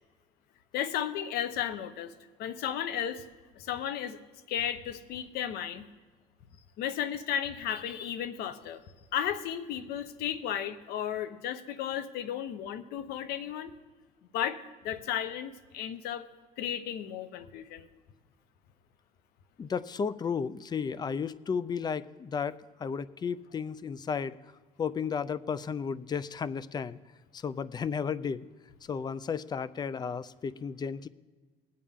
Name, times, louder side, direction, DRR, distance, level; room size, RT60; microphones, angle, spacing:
voice 1, 0.7-2.1 2.4-3.3 3.6-4.2 4.5-5.9 6.8-8.8 9.1-13.7 14.3-14.6 14.8-16.3 16.6-17.9, left 9 dB, 70° left, 12 dB, 0.9 m, -34 dB
voice 2, 19.6-24.4 24.8-27.0 27.3-28.5 28.9-31.1, left 6 dB, 25° left, 18 dB, 0.4 m, -33 dB
19.5 x 8.5 x 3.6 m, 1.4 s
cardioid pair, 110°, 17 cm